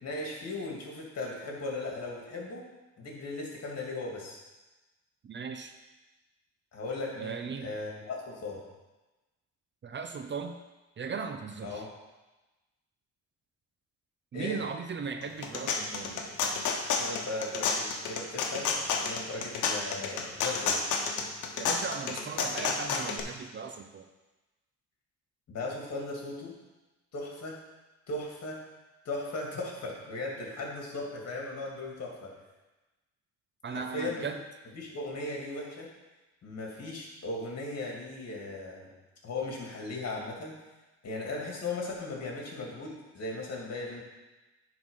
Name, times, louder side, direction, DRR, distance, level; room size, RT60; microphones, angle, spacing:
voice 1, 0.0-2.7 3.0-4.4 6.7-8.6 11.6-11.9 14.3-14.6 17.0-20.8 25.5-26.6 27.1-27.6 28.1-28.6 29.0-32.4 33.7-34.3 34.7-35.9 36.4-38.9 39.2-40.6 41.0-44.0, left 2 dB, 55° left, -2 dB, 2.6 m, -37 dB
voice 2, 5.2-5.7 7.2-7.7 9.8-10.6 11.0-11.8 14.3-16.2 21.6-24.1 33.6-34.4, right 5 dB, 40° right, 7 dB, 0.7 m, -37 dB
sound 1, 15.2-23.2, left 5 dB, 85° left, 1.0 m, -30 dB
9.6 x 4.0 x 5.6 m, 1.1 s
cardioid pair, 90°, 30 cm